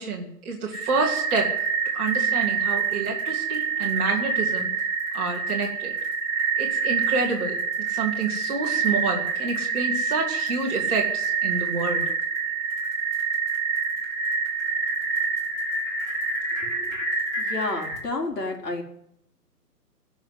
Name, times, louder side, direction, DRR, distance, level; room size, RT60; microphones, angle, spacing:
voice 1, 0.0-1.5 1.9-4.7 5.1-5.9 6.6-7.6 7.9-12.0, right 4 dB, 5° right, -6 dB, 1.0 m, -28 dB
sound 1, 0.7-18.0, right 5 dB, 10° left, 1.6 m, -27 dB
voice 2, 16.6-17.0 17.4-18.8, left 2 dB, 85° left, 1 dB, 4.4 m, -30 dB
16.5 x 6.3 x 9.5 m, 0.76 s
hypercardioid pair, 170°, 48 cm